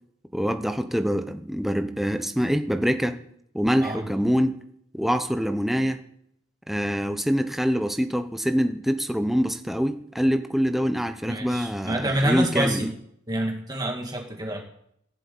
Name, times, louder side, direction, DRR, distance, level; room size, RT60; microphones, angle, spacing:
voice 1, 0.3-3.2 3.5-4.6 4.9-6.0 6.7-12.9, equal, ahead, 7 dB, 0.9 m, -25 dB
voice 2, 11.3-12.9 13.3-14.6, right 1 dB, 20° right, 1 dB, 2.0 m, -27 dB
17.0 x 7.8 x 8.5 m, 0.73 s
head